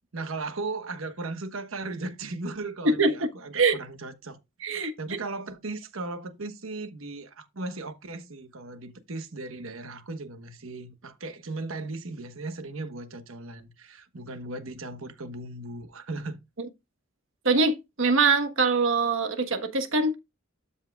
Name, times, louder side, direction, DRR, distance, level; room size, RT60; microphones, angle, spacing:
voice 1, 0.1-4.4 4.7-16.4, right 3 dB, 90° right, 1.2 m, -37 dB
voice 2, 17.4-20.2, right 3 dB, 75° right, 1.4 m, -23 dB
12.5 x 5.6 x 2.4 m
head